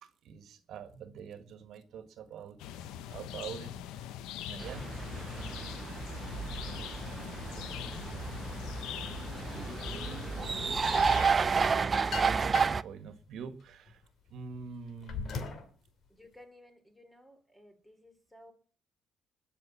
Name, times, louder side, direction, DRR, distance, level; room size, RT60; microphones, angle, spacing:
voice 1, 0.0-4.1 4.5-5.8 6.7-7.6 7.9-8.5 10.9-11.8 12.2-14.0 14.3-15.7, right 6 dB, 70° right, 11 dB, 1.6 m, -47 dB
sound 1, 2.6-11.4, left 11 dB, 85° left, 0.8 m, -42 dB
sound 2, 4.6-12.8, right 5 dB, 35° right, 0.6 m, -31 dB
sound 3, 11.5-12.9 13.4-15.7, left 5 dB, 60° left, 2.6 m, -40 dB
voice 2, 16.1-18.5, left 1 dB, 5° left, 7 dB, 3.6 m, -56 dB
20.0 x 6.8 x 7.2 m, 0.43 s
cardioid pair, 80°, 0 cm